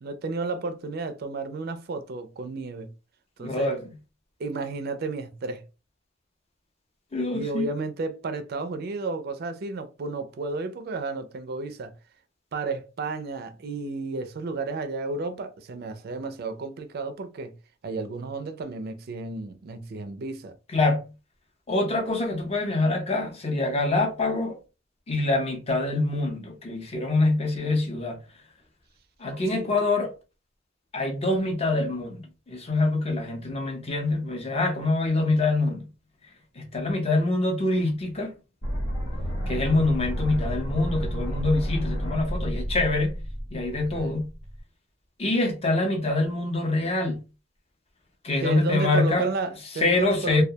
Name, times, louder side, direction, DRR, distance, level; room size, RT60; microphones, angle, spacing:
voice 1, 0.0-2.9 3.4-3.7 4.4-5.6 7.3-12.0 12.5-17.6 17.8-20.5 29.5-29.7 43.7-44.1 48.4-50.4, right 3 dB, 50° right, 0.4 m, -32 dB
voice 2, 3.4-3.8 7.1-7.7 20.7-21.0 21.7-24.6 25.1-28.2 29.2-30.1 30.9-35.9 36.6-38.4 39.5-43.1 43.5-44.3 45.2-47.2 48.2-49.3 49.8-50.4, left 2 dB, 30° left, 0.6 m, -25 dB
sound 1, 38.6-44.6, equal, 75° left, 1.1 m, -31 dB
2.2 x 2.1 x 2.7 m
head